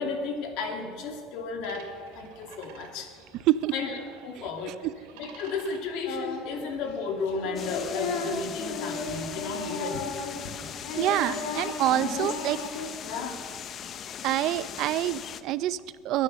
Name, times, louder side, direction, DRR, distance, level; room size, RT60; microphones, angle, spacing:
voice 1, 0.0-1.9 2.2-3.1 3.7-4.8 5.2-10.3 11.2-11.4 11.9-12.6 13.0-13.4, left 4 dB, 65° left, 4 dB, 2.5 m, -33 dB
sound 1, 1.6-7.7, right 6 dB, 90° right, 2.6 m, -52 dB
Singing, 6.1-6.6 6.9-10.5 10.8-12.9, left 4 dB, 90° left, 2.9 m, -34 dB
sound 2, 7.6-15.4, left 8 dB, 40° left, 0.7 m, -40 dB
voice 2, 10.9-12.6 14.2-16.2, right 14 dB, 60° right, 16 dB, 0.5 m, -26 dB
22.0 x 9.8 x 6.5 m, 2.2 s
cardioid pair, 130°, 0 cm